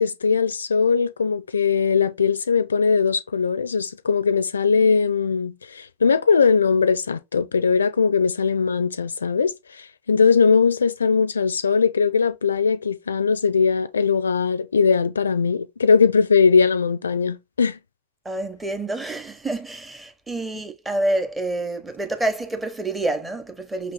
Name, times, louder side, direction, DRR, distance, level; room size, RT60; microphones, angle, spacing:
voice 1, 0.0-17.8, left 5 dB, 70° left, 0.4 m, -20 dB
voice 2, 18.2-23.9, right 2 dB, 10° right, 0.9 m, -27 dB
5.8 x 2.9 x 3.0 m
figure-of-eight pair, 90°, 0 cm